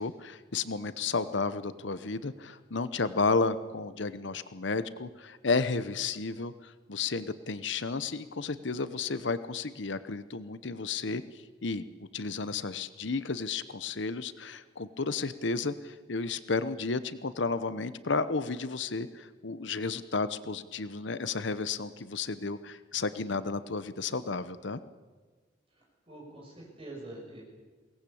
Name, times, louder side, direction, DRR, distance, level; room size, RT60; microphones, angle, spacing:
voice 1, 0.0-24.8, left 4 dB, 70° left, 13 dB, 0.9 m, -32 dB
voice 2, 25.7-27.4, right 2 dB, 30° right, -2 dB, 6.9 m, -46 dB
22.0 x 18.0 x 8.6 m, 1.4 s
head